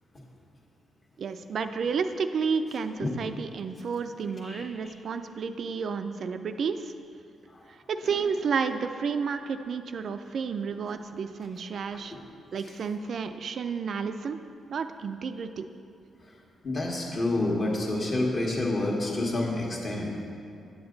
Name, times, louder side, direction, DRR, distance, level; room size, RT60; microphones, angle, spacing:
voice 1, 1.2-6.9 7.9-12.2 12.5-14.4 14.7-15.7, right 5 dB, 55° right, 8 dB, 0.3 m, -31 dB
voice 2, 16.6-20.1, left 2 dB, 35° left, -2 dB, 1.4 m, -28 dB
8.5 x 7.9 x 3.9 m, 2.5 s
cardioid pair, 125°, 0 cm